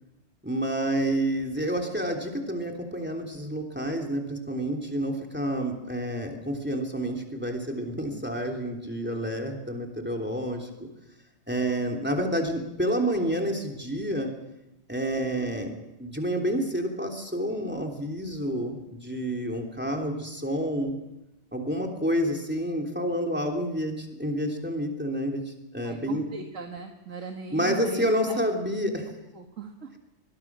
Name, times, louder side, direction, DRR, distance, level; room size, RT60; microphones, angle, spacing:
voice 1, 0.4-10.7 11.5-14.3 14.9-20.9 21.5-26.3 27.5-29.0, equal, 10° right, 3 dB, 3.2 m, -29 dB
voice 2, 25.8-28.4 28.9-29.9, right 4 dB, 85° right, 3 dB, 2.0 m, -38 dB
24.0 x 22.0 x 6.2 m, 0.89 s
omnidirectional pair, 1.3 m